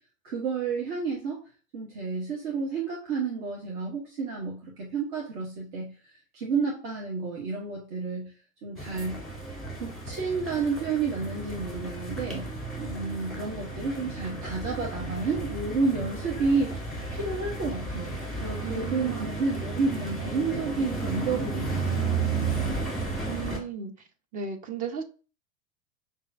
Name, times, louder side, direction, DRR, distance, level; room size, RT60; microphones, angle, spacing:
voice 1, 0.2-1.4 1.7-8.3 8.6-9.2 9.7-12.5 12.8-22.8, right 4 dB, 50° right, -1 dB, 0.9 m, -31 dB
sound 1, 8.8-23.6, right 3 dB, ahead, 1.4 m, -33 dB
voice 2, 18.6-19.4 23.3-23.9 24.3-25.0, right 6 dB, 20° right, 7 dB, 0.5 m, -35 dB
5.5 x 2.5 x 2.4 m, 0.35 s
figure-of-eight pair, 80°, 40 cm